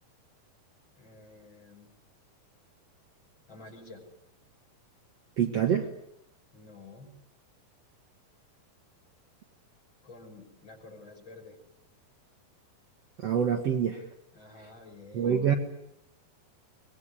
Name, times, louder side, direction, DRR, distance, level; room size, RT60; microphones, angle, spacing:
voice 1, 1.0-1.9 3.5-4.0 6.5-7.1 10.0-11.6 14.3-15.5, left 3 dB, 30° left, 2 dB, 6.1 m, -50 dB
voice 2, 5.4-5.9 13.2-14.0 15.1-15.5, right 8 dB, 55° right, 4 dB, 2.1 m, -26 dB
24.0 x 20.5 x 9.8 m, 0.77 s
omnidirectional pair, 4.2 m